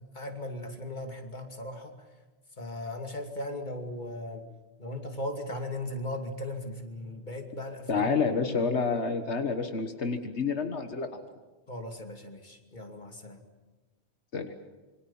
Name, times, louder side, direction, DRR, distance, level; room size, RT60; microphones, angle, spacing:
voice 1, 0.1-1.9 2.6-4.4 4.8-8.1 8.5-8.6 11.7-13.4, left 1 dB, 45° left, 4 dB, 2.8 m, -37 dB
voice 2, 7.9-11.1 14.3-14.5, left 5 dB, 85° left, 6 dB, 1.8 m, -28 dB
26.5 x 24.0 x 7.3 m, 1.2 s
omnidirectional pair, 1.1 m